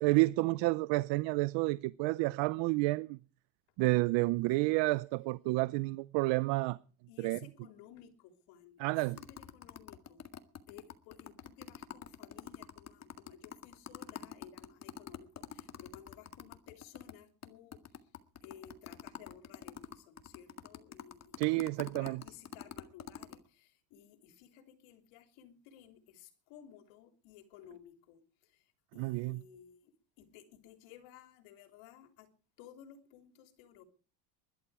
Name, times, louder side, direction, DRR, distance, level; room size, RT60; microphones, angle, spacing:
voice 1, 0.0-3.2 3.8-6.8 7.2-7.4 8.8-9.2 21.4-22.2 29.0-29.4, right 22 dB, 65° right, 0.7 m, -30 dB
voice 2, 7.1-10.3 10.7-18.1 18.4-32.3 32.6-33.8, left 9 dB, 80° left, 3.5 m, -57 dB
sound 1, 9.2-17.1 17.4-17.5 17.7-23.4, left 8 dB, 35° left, 1.9 m, -46 dB
20.5 x 12.0 x 4.9 m
supercardioid pair, 115°, 46 cm